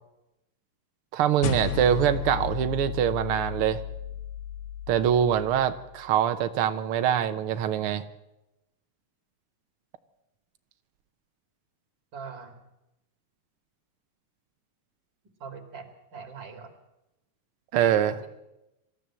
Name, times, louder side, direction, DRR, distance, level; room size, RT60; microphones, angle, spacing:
voice 1, 1.1-3.8 4.9-8.0 17.7-18.2, right 10 dB, 90° right, 9 dB, 1.2 m, -24 dB
sound 1, 1.4-6.1, left 10 dB, 70° left, 2.2 m, -34 dB
voice 2, 12.1-12.6 15.4-16.7 18.1-18.3, right 5 dB, 35° right, 6 dB, 2.9 m, -42 dB
25.0 x 14.0 x 7.6 m, 0.92 s
omnidirectional pair, 3.8 m